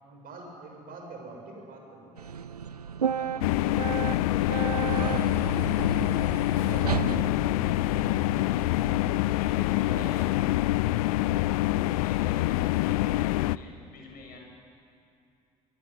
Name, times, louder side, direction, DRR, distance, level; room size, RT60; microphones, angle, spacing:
voice 1, 0.0-2.2 6.6-7.6 8.7-8.9 9.9-10.4 11.4-11.8, right 3 dB, 50° right, 2 dB, 7.1 m, -45 dB
sound 1, 2.2-9.2, right 7 dB, 90° right, 0.5 m, -34 dB
voice 2, 3.0-5.7 6.7-7.1 9.2-10.4 11.0-11.3 12.0-14.4, left 3 dB, 50° left, 1 dB, 7.3 m, -48 dB
sound 2, 3.4-13.6, left 17 dB, 70° left, 0.5 m, -26 dB
24.0 x 23.0 x 9.9 m, 2.6 s
figure-of-eight pair, 55°, 19 cm